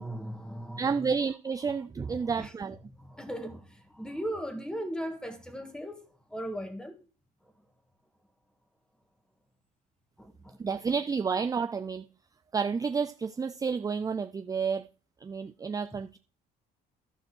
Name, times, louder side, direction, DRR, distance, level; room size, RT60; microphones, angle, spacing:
voice 1, 0.0-1.2 1.6-1.7 2.1-2.5 2.9-7.0 10.2-10.6, equal, 5° left, 2.0 m, -38 dB
voice 2, 0.8-2.8 10.6-12.1 12.5-14.9 15.2-16.2, right 5 dB, 20° right, 0.5 m, -30 dB
11.5 x 5.3 x 6.3 m
cardioid pair, 110°, 17 cm